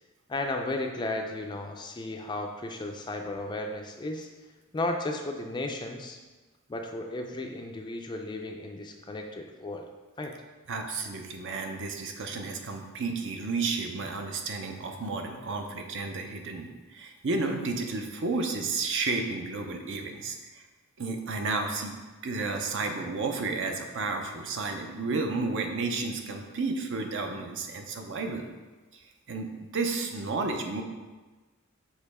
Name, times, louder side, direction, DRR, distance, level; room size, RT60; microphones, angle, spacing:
voice 1, 0.3-4.3 4.7-6.2 6.7-9.9 10.2-10.3, left 2 dB, 20° left, 3 dB, 0.4 m, -34 dB
voice 2, 10.7-20.7 21.0-21.9 22.2-28.5 29.3-30.8, right 3 dB, 55° right, 4 dB, 0.6 m, -32 dB
6.6 x 3.0 x 4.8 m, 1.3 s
head